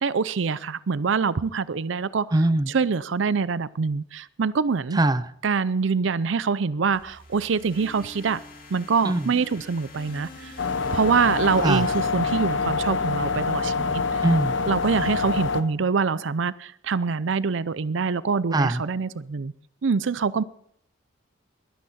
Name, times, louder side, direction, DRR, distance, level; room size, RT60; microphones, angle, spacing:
voice 1, 0.0-2.3 2.7-5.0 5.4-8.4 8.7-10.5 10.9-14.2 14.7-19.5 19.8-20.4, right 5 dB, 75° right, 0.5 m, -25 dB
voice 2, 2.3-2.7 4.9-5.3 9.0-9.3 11.6-11.9 14.2-14.6 18.5-18.8, right 2 dB, 20° right, 0.5 m, -21 dB
sound 1, 6.9-13.1, left 2 dB, 45° left, 2.9 m, -45 dB
sound 2, 10.6-15.6, left 4 dB, 75° left, 1.1 m, -26 dB
21.5 x 10.0 x 4.2 m
head